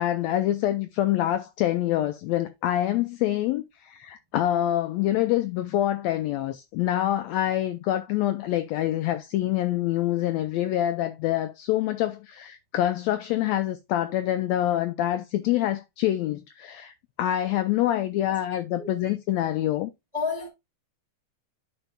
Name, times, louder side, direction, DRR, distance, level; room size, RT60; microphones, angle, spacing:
voice 1, 0.0-19.9, left 13 dB, 90° left, 1.5 m, -26 dB
voice 2, 20.1-20.5, left 5 dB, 20° right, 1.0 m, -30 dB
12.0 x 4.4 x 2.2 m
omnidirectional pair, 3.6 m